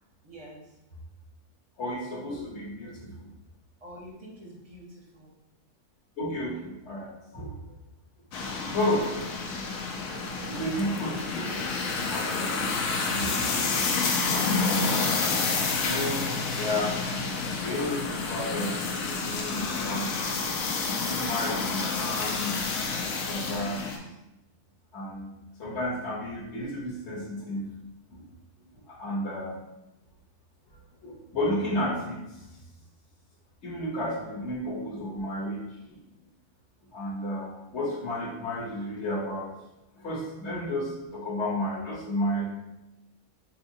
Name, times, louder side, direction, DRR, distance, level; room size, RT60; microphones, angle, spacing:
voice 1, 0.2-0.8 3.8-5.3 22.0-22.2, equal, 35° right, -3 dB, 0.6 m, -46 dB
voice 2, 1.8-3.3 6.2-7.6 8.7-9.1 10.5-11.6 12.1-12.7 13.0-13.5 14.3-15.0 15.7-16.3 16.6-17.2 17.6-20.1 21.1-22.5 23.0-23.8 24.9-27.8 28.1-28.2 28.9-29.6 31.0-32.4 33.6-35.6 35.9-36.0 36.9-39.5 40.0-42.4, left 1 dB, 50° left, -3 dB, 1.2 m, -32 dB
sound 1, 8.3-24.0, left 4 dB, 75° left, 1.0 m, -29 dB
4.9 x 2.8 x 2.7 m, 0.95 s
omnidirectional pair, 1.6 m